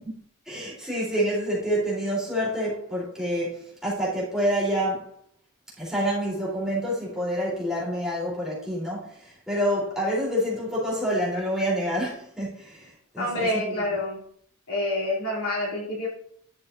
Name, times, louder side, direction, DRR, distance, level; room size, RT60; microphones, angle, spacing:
voice 1, 0.5-5.0 5.8-13.7, equal, 5° right, -8 dB, 3.9 m, -27 dB
voice 2, 13.2-14.2 14.7-16.1, left 1 dB, 70° left, -4 dB, 3.0 m, -27 dB
11.0 x 6.8 x 2.7 m, 0.66 s
head